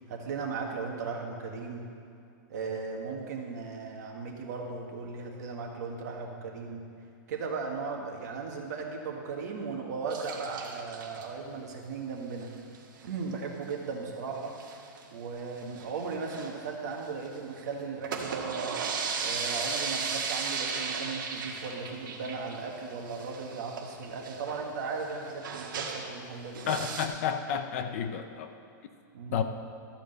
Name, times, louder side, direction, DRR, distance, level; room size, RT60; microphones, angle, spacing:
voice 1, 0.0-1.9 2.5-6.8 7.3-12.5 13.0-14.5 15.1-18.7 19.2-26.7 29.1-29.4, right 4 dB, 55° right, 1 dB, 1.7 m, -37 dB
sound 1, 10.1-11.2 12.5-12.8 13.0-13.1 13.3-13.4 13.7-13.8 14.4-15.0 15.5-17.4 17.9-26.2 26.5-27.1, right 5 dB, 80° right, 1.5 m, -36 dB
voice 2, 26.7-28.6 29.3-29.4, left 8 dB, 40° left, 8 dB, 0.6 m, -31 dB
13.0 x 5.0 x 7.8 m, 2.5 s
supercardioid pair, 180°, 11 cm